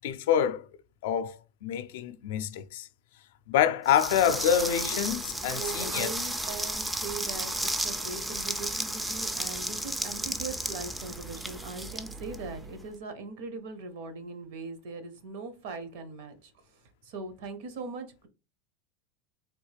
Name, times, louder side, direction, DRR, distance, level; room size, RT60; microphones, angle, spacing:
voice 1, 0.0-0.6 1.0-2.9 3.5-6.1, left 9 dB, 75° left, 0.4 m, -27 dB
sound 1, 3.9-12.9, right 1 dB, 5° right, 0.3 m, -33 dB
voice 2, 5.6-16.5 17.0-18.3, right 4 dB, 70° right, 0.7 m, -40 dB
3.4 x 2.3 x 3.2 m
supercardioid pair, 145°, 0 cm